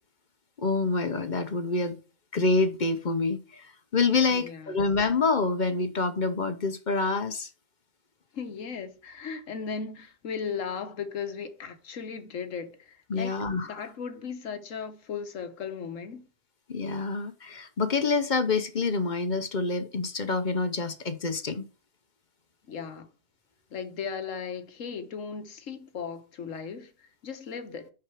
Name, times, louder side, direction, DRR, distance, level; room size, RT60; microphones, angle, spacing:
voice 1, 0.6-2.0 2.3-3.7 3.9-7.5 13.1-13.8 16.7-21.7, left 3 dB, 45° left, 0.8 m, -27 dB
voice 2, 4.3-4.8 8.3-13.3 13.6-16.3 22.7-23.1 23.7-27.9, left 6 dB, 85° left, 1.5 m, -37 dB
6.3 x 5.8 x 4.7 m
omnidirectional pair, 1.3 m